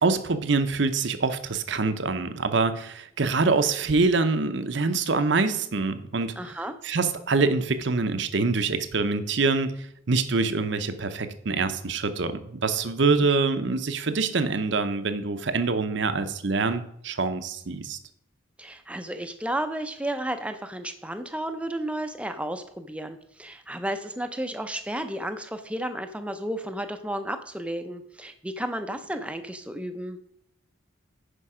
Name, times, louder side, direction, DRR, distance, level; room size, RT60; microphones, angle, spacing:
voice 1, 0.0-6.6 6.8-18.0, right 4 dB, 60° right, 10 dB, 0.7 m, -25 dB
voice 2, 6.4-6.7 18.6-30.2, right 1 dB, 5° right, 8 dB, 0.6 m, -32 dB
10.0 x 5.2 x 4.9 m, 0.74 s
head